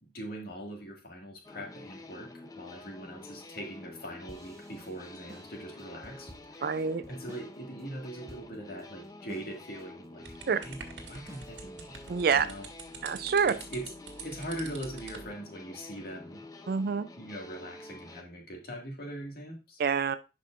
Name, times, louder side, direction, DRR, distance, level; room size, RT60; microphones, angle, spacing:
voice 1, 0.0-10.8 11.1-12.0 12.3-12.7 13.5-13.8 14.2-16.4 17.2-19.8, right 1 dB, 55° left, 1 dB, 1.9 m, -42 dB
sound 1, 1.4-18.2, left 2 dB, 20° left, 0.6 m, -48 dB
sound 2, 4.3-7.5 7.8-7.9 8.3-8.8 9.3-9.8 10.3-12.1, equal, 15° right, 0.7 m, -52 dB
voice 2, 6.6-7.0 10.5-10.6 12.1-12.5 13.0-13.5 16.7-17.1 19.8-20.2, right 6 dB, 55° right, 13 dB, 0.4 m, -26 dB
sound 3, 10.3-15.3, right 4 dB, 80° right, 1.6 m, -46 dB
11.0 x 5.1 x 2.5 m, 0.29 s
head